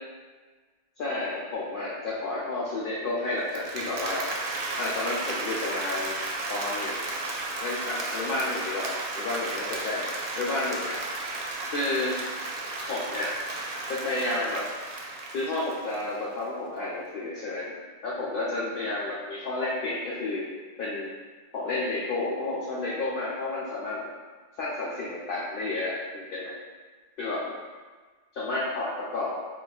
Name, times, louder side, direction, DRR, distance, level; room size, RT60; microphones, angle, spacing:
voice 1, 1.0-4.3 4.8-6.2 6.5-7.0 7.6-10.1 10.4-11.0 11.7-12.2 12.9-13.3 13.9-14.7 15.3-17.7 18.0-20.5 20.8-21.1 21.5-24.1 24.6-26.5 27.2-27.4 28.3-29.4, left 2 dB, 65° left, -7 dB, 0.7 m, -31 dB
Applause, 3.4-16.4, right 2 dB, 65° right, 0.7 m, -34 dB
3.8 x 2.5 x 2.3 m, 1.4 s
omnidirectional pair, 1.0 m